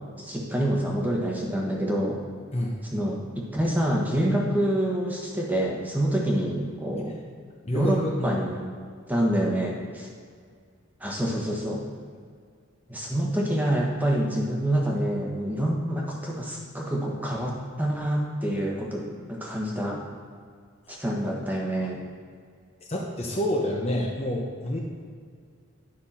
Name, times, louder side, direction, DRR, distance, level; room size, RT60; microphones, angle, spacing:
voice 1, 0.2-2.2 2.9-7.2 7.7-8.6 9.1-10.1 11.0-11.8 12.9-19.0 19.3-20.0 20.9-22.0, right 1 dB, 10° right, -2 dB, 1.2 m, -27 dB
voice 2, 7.6-8.4 20.9-21.0 22.9-24.8, left 1 dB, 30° left, -1 dB, 0.8 m, -28 dB
10.5 x 5.8 x 4.3 m, 2.1 s
head